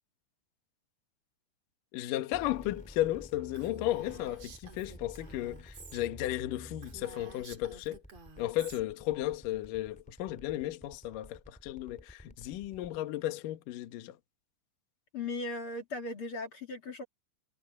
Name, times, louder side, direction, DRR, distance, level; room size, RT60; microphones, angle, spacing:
voice 1, 1.9-8.0 8.4-14.2, left 14 dB, 75° left, 1.9 m, -34 dB
sound 1, 2.3-13.0, equal, 5° left, 0.6 m, -51 dB
Female speech woman speaking, 3.5-6.0 6.4-6.5 6.8-8.8, right 4 dB, 40° right, 3.0 m, -51 dB
voice 2, 15.1-17.0, left 3 dB, 40° left, 2.1 m, -37 dB
omnidirectional pair, 5.9 m